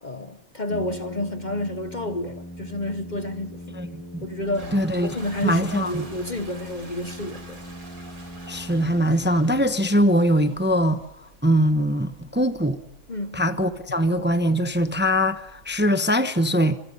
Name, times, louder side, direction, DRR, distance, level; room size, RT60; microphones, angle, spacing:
voice 1, 0.0-3.8 4.2-4.7 5.0-7.6 13.1-13.4, left 1 dB, 35° left, 1.0 m, -30 dB
Brass instrument, 0.7-10.2, equal, 15° left, 1.6 m, -40 dB
voice 2, 3.7-4.2 4.7-5.2 5.4-6.0 8.5-11.1 11.4-12.8 13.3-16.8, equal, 10° right, 0.9 m, -22 dB
Toilet flush, 4.4-15.9, right 2 dB, 80° right, 4.8 m, -47 dB
27.0 x 24.5 x 5.6 m
omnidirectional pair, 1.5 m